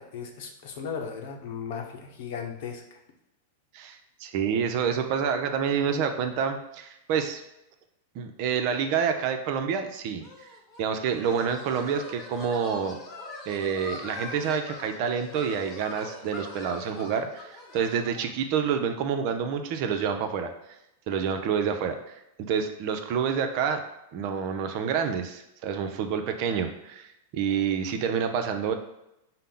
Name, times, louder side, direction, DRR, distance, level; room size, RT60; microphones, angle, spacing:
voice 1, 0.0-3.0, left 6 dB, 60° left, 2 dB, 0.8 m, -36 dB
voice 2, 3.7-7.4 8.1-10.2 10.8-13.0 13.5-20.5 21.1-22.1 22.5-23.8 24.1-28.7, right 7 dB, 50° right, 6 dB, 0.5 m, -28 dB
sound 1, 10.2-18.3, left 3 dB, 30° left, 0.9 m, -42 dB
5.4 x 2.0 x 3.7 m, 0.89 s
hypercardioid pair, 120°, 0 cm